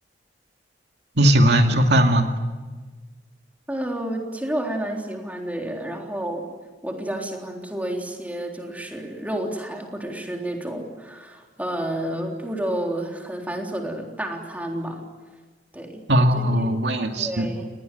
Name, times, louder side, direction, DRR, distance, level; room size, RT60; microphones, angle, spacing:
voice 1, 1.2-2.3 16.1-17.5, equal, 75° right, 4 dB, 2.3 m, -18 dB
voice 2, 3.7-6.5 6.8-15.0 15.7-16.7 17.2-17.7, right 1 dB, 10° right, 1 dB, 3.6 m, -30 dB
28.0 x 19.5 x 9.3 m, 1.4 s
head